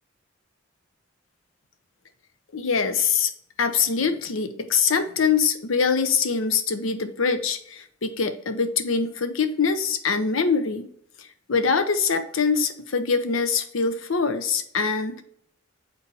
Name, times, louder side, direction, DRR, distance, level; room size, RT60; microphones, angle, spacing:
voice 1, 2.5-3.3 3.6-10.9 11.2-15.2, left 5 dB, 80° left, 10 dB, 0.7 m, -24 dB
7.0 x 4.0 x 3.3 m, 0.66 s
head